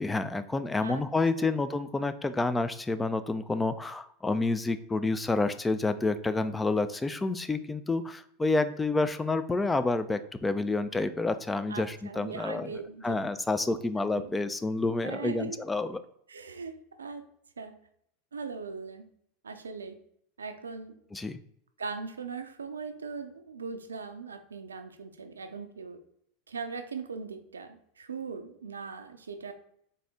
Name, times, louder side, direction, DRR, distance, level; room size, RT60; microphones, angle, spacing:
voice 1, 0.0-16.0 21.1-21.4, left 3 dB, 15° left, 11 dB, 0.3 m, -29 dB
voice 2, 11.7-13.1 14.1-14.3 15.0-15.6 16.3-17.3 17.6-17.7 18.3-19.1 19.4-20.0 20.4-21.0 21.8-26.0 26.5-29.5, right 5 dB, 90° right, 8 dB, 0.4 m, -39 dB
3.9 x 2.7 x 3.5 m, 0.70 s
hypercardioid pair, 90°, 0 cm